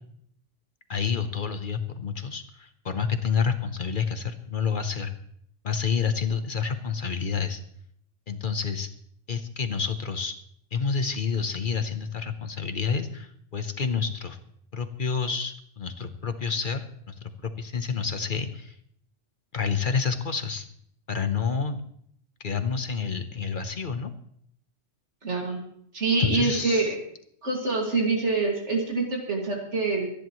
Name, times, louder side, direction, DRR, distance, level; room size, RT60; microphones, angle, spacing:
voice 1, 0.9-5.1 5.6-7.6 8.3-8.9 9.3-10.4 10.7-14.4 14.7-18.7 19.5-20.7 21.1-21.8 22.4-24.1 26.2-26.9, left 6 dB, 45° left, 9 dB, 1.0 m, -29 dB
voice 2, 25.2-25.6 25.9-27.0 27.4-30.1, right 3 dB, 75° right, 0 dB, 2.6 m, -25 dB
25.5 x 10.5 x 3.1 m, 0.69 s
omnidirectional pair, 1.2 m